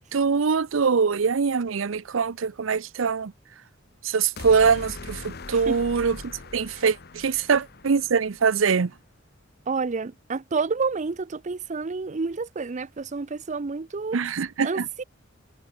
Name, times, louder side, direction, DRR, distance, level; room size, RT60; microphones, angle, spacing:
voice 1, 0.1-3.3 4.0-8.9 14.1-14.8, right 5 dB, 90° right, 0.6 m, -23 dB
sound 1, 4.4-8.6, left 3 dB, 55° left, 1.2 m, -41 dB
voice 2, 9.7-14.2 14.6-15.0, right 4 dB, 40° right, 0.5 m, -29 dB
head